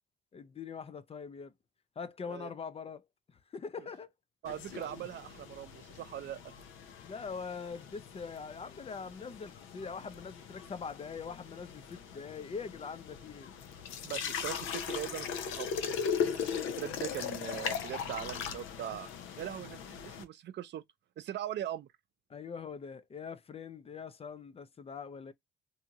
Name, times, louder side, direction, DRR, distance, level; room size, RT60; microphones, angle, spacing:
voice 1, 0.3-1.5 2.0-4.1 7.0-13.6 22.3-25.3, left 5 dB, 30° left, 0.4 m, -43 dB
voice 2, 4.4-6.5 14.0-15.8 16.2-16.5 16.8-19.1 19.4-20.8 21.2-21.9, right 11 dB, 60° right, 0.5 m, -40 dB
sound 1, 4.5-20.2, left 7 dB, 90° left, 0.6 m, -39 dB
2.7 x 2.4 x 2.8 m
cardioid pair, 90°, 20 cm